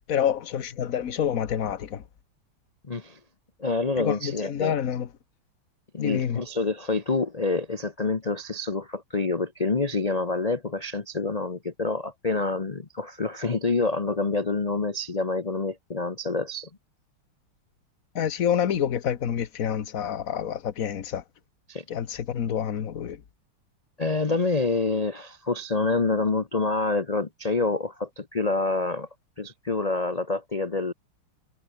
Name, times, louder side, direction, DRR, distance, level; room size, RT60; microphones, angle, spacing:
voice 1, 0.1-2.0 4.0-5.1 6.0-6.4 18.1-21.2 21.9-23.2, left 9 dB, 45° left, 1.4 m, -27 dB
voice 2, 2.9-3.2 3.6-4.7 5.9-16.7 21.7-21.8 24.0-29.1 29.4-30.9, left 3 dB, 90° left, 0.3 m, -27 dB
omnidirectional pair, 2.3 m